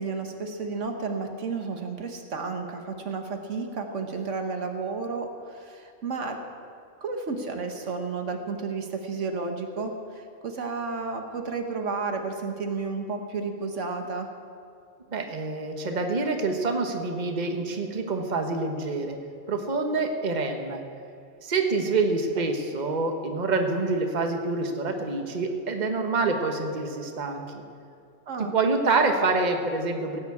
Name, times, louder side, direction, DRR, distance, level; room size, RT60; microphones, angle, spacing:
voice 1, 0.0-6.4 7.0-14.3 22.4-22.5 28.3-28.5, right 4 dB, 70° right, 5 dB, 1.5 m, -32 dB
voice 2, 15.1-19.2 19.5-20.8 21.4-27.6 28.4-30.2, right 3 dB, 35° right, 4 dB, 1.3 m, -26 dB
17.5 x 7.2 x 8.4 m, 2.4 s
omnidirectional pair, 1.3 m